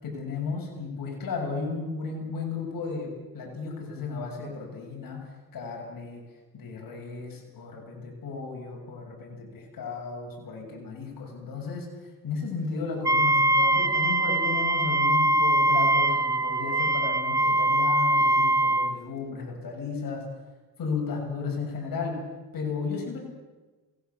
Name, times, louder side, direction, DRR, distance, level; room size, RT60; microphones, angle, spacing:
voice 1, 0.0-6.2 6.5-11.9 12.2-20.3 20.8-22.2 22.5-23.3, left 4 dB, 65° left, 0 dB, 7.0 m, -34 dB
Wind instrument woodwind instrument, 13.0-19.0, right 1 dB, 10° right, 1.0 m, -22 dB
28.0 x 18.0 x 7.1 m, 1.2 s
cardioid pair, 80°, 36 cm